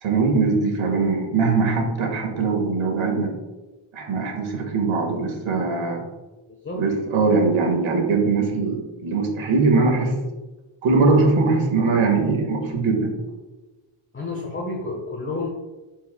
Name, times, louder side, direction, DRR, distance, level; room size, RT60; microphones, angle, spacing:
voice 1, 0.0-3.3 3.9-6.0 6.7-10.1 10.8-13.1, right 4 dB, 70° right, 2 dB, 1.8 m, -21 dB
voice 2, 14.1-15.5, left 3 dB, 25° left, -2 dB, 1.2 m, -30 dB
11.5 x 4.6 x 2.3 m, 1.2 s
cardioid pair, 90°, 50 cm